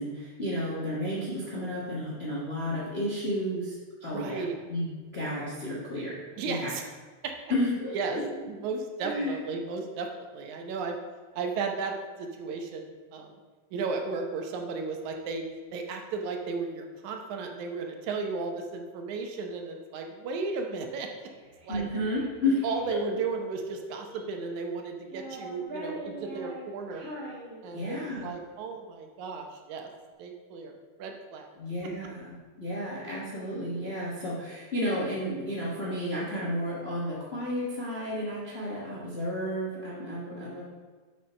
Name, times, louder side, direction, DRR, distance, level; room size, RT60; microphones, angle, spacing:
voice 1, 0.0-4.4 4.7-6.7 7.5-8.2 9.0-9.4 21.7-22.6 22.9-23.0 27.7-28.3 31.6-32.3 32.6-40.6, left 1 dB, 40° left, -6 dB, 0.9 m, -32 dB
voice 2, 4.1-4.6 6.4-6.8 7.2-7.3 7.9-8.2 8.5-11.0 11.3-13.4 13.7-15.4 15.7-21.1 21.6-22.1 22.6-27.1 27.6-29.9 30.2-30.7 31.0-31.5 32.0-32.1, right 4 dB, 75° right, 3 dB, 2.2 m, -34 dB
Child speech kid speaking, 21.3-22.9 23.7-24.6 25.0-28.1, right 1 dB, 40° right, 3.1 m, -43 dB
7.5 x 5.2 x 5.5 m, 1.4 s
omnidirectional pair, 3.4 m